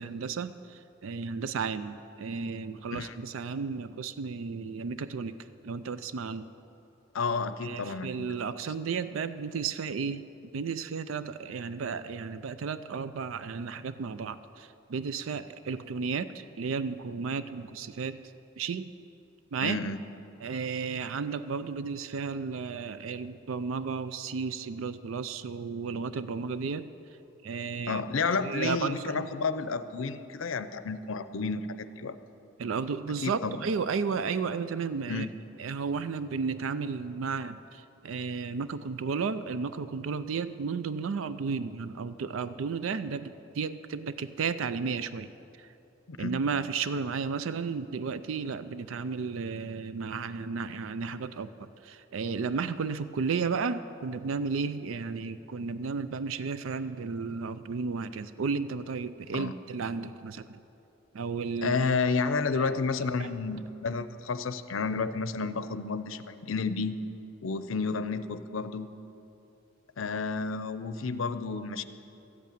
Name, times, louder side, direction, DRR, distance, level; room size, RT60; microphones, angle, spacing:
voice 1, 0.0-5.3 5.6-6.5 7.6-10.2 10.5-18.2 18.6-18.9 19.5-19.8 20.4-26.9 27.4-28.0 28.4-29.3 32.6-35.3 35.6-45.3 45.6-45.7 46.2-51.5 51.8-60.6 61.1-61.8 62.5-62.8 63.2-63.3, right 5 dB, 85° right, 13 dB, 0.4 m, -33 dB
voice 2, 7.1-8.3 19.6-20.0 27.9-32.2 33.2-33.6 35.1-35.3 46.1-46.3 59.3-59.5 61.6-67.0 67.4-68.9 70.0-71.8, left 4 dB, 85° left, 11 dB, 0.6 m, -31 dB
13.5 x 8.4 x 8.9 m, 3.0 s
head